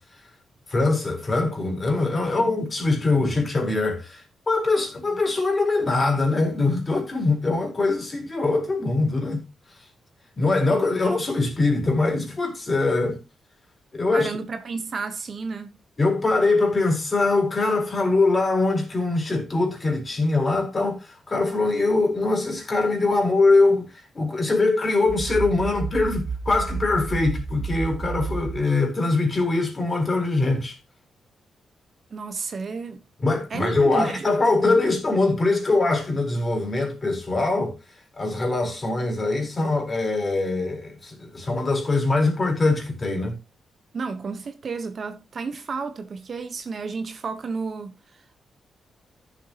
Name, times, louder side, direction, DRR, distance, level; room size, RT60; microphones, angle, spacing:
voice 1, 0.7-9.4 10.4-13.2 13.9-14.3 16.0-30.8 33.2-37.7 38.2-43.4, left 3 dB, 25° left, 4.4 m, -22 dB
voice 2, 14.1-15.8 32.1-33.0 33.5-34.3 34.6-34.7 43.9-48.4, right 4 dB, 45° right, 1.2 m, -32 dB
sound 1, 25.1-28.6, right 5 dB, 30° right, 0.8 m, -31 dB
14.5 x 7.4 x 3.0 m
wide cardioid pair, 130°, 0 cm